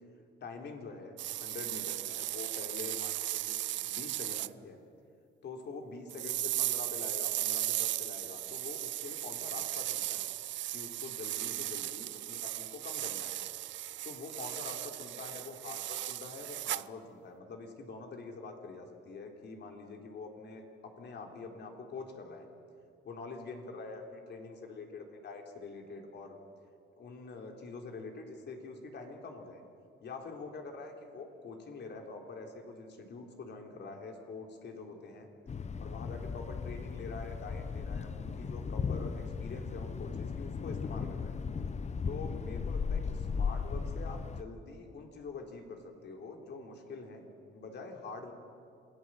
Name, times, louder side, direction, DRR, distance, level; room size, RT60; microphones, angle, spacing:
voice 1, 0.4-4.8 5.4-10.2 10.7-13.5 14.0-22.5 23.0-26.4 27.0-29.6 30.0-35.3 35.8-41.4 42.0-47.3 47.5-48.3, left 4 dB, 60° left, 3 dB, 3.6 m, -45 dB
sound 1, 1.2-4.5 6.1-16.9, right 14 dB, 70° right, 0.5 m, -36 dB
Thunder, 35.5-44.4, left 5 dB, 35° left, 0.9 m, -36 dB
27.5 x 18.0 x 7.6 m, 2.4 s
cardioid pair, 90°, 20 cm